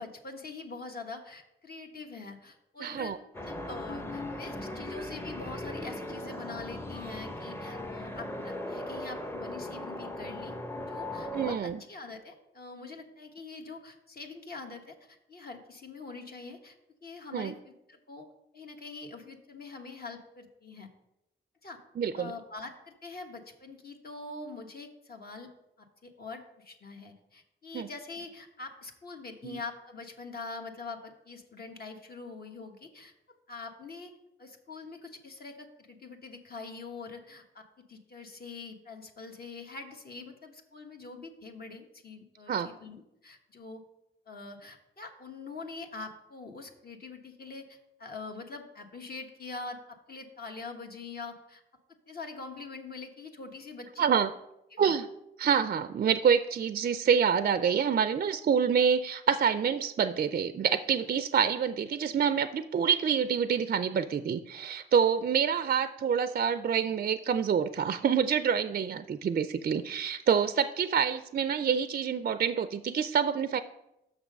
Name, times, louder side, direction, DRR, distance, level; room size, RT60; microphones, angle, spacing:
voice 1, 0.0-3.1 3.4-10.5 10.9-16.7 17.0-18.3 18.5-20.9 21.6-21.8 22.1-25.5 25.8-33.1 33.5-34.1 34.4-43.8 44.3-51.6 52.1-54.1 54.7-54.9, left 3 dB, 50° left, 3 dB, 1.2 m, -44 dB
voice 2, 2.8-3.2 11.3-11.8 17.3-17.5 22.0-22.3 27.7-27.9 29.4-29.6 42.5-42.7 54.0-54.3 54.8-55.1 55.4-73.6, right 7 dB, 45° right, 12 dB, 0.4 m, -27 dB
sound 1, 3.3-11.6, left 1 dB, 10° left, 0.7 m, -38 dB
6.4 x 6.0 x 5.2 m, 0.86 s
cardioid pair, 75°, 21 cm